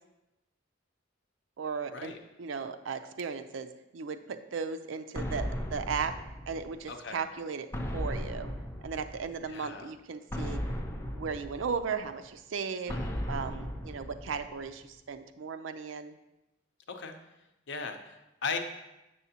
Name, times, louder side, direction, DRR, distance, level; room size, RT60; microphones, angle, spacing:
voice 1, 1.6-3.7 3.9-6.1 6.5-7.7 7.9-8.5 8.8-10.6 11.1-13.0 13.3-16.2, right 5 dB, 75° right, 9 dB, 0.5 m, -36 dB
sound 1, 5.2-6.9 7.7-9.4 10.3-12.1 12.9-14.7, equal, 15° left, 0.5 m, -36 dB
voice 2, 6.9-7.2 9.4-9.9 12.9-13.4 16.9-17.1 17.7-18.6, left 5 dB, 65° left, 5 dB, 0.7 m, -38 dB
7.0 x 6.8 x 2.8 m, 0.96 s
head